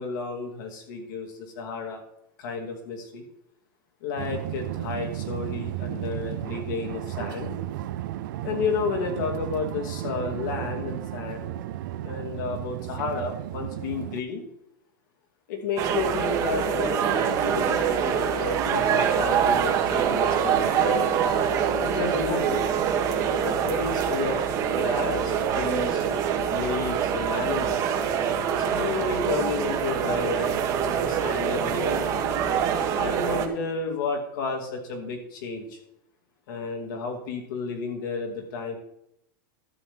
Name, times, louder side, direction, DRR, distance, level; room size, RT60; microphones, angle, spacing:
voice 1, 0.0-2.0 2.4-3.2 4.0-7.5 8.4-11.6 11.9-14.4 15.5-21.0 21.8-22.7 23.4-26.1 26.5-27.8 28.5-32.0 32.9-35.8 36.5-38.8, left 4 dB, 70° left, 2 dB, 2.5 m, -32 dB
sound 1, 4.2-14.2, right 13 dB, 70° right, 0.4 m, -34 dB
sound 2, 15.8-33.5, right 8 dB, 30° right, 1.1 m, -25 dB
12.0 x 7.6 x 3.7 m, 0.77 s
supercardioid pair, 160°, 11 cm